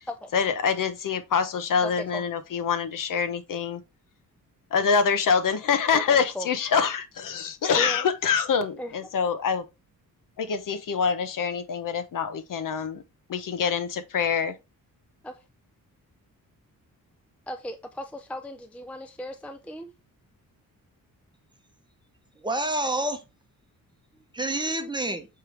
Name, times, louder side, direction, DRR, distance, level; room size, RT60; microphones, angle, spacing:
voice 1, 0.3-3.8 4.7-9.6 10.4-13.0 13.3-14.5, left 6 dB, 65° left, 1.1 m, -25 dB
voice 2, 1.8-2.2 5.9-6.5 7.8-8.0 8.8-8.9 15.2-15.3 17.5-19.9, equal, 5° left, 0.5 m, -36 dB
voice 3, 22.4-23.2 24.1-25.3, right 1 dB, 15° right, 0.9 m, -28 dB
8.2 x 3.4 x 3.4 m
wide cardioid pair, 135°, 35 cm